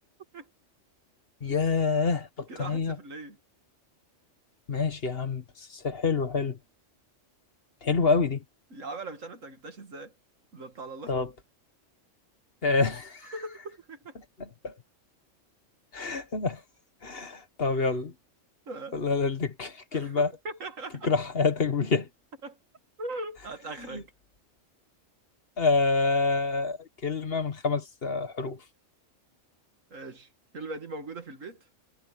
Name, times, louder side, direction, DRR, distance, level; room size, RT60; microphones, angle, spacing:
voice 1, 1.4-2.9 4.7-6.6 7.8-8.4 11.1-11.3 12.6-13.3 14.6-14.7 15.9-16.6 17.0-18.1 18.9-20.3 21.0-22.1 23.9-24.0 25.6-28.6, left 4 dB, 50° left, 1.6 m, -27 dB
voice 2, 2.5-3.4 8.7-10.1 10.5-11.3 13.3-14.2 17.7-18.0 18.7-19.0 19.9-21.1 22.4-22.6 23.0-24.1 29.9-30.3 30.5-31.6, right 2 dB, 85° right, 2.5 m, -40 dB
omnidirectional pair, 1.3 m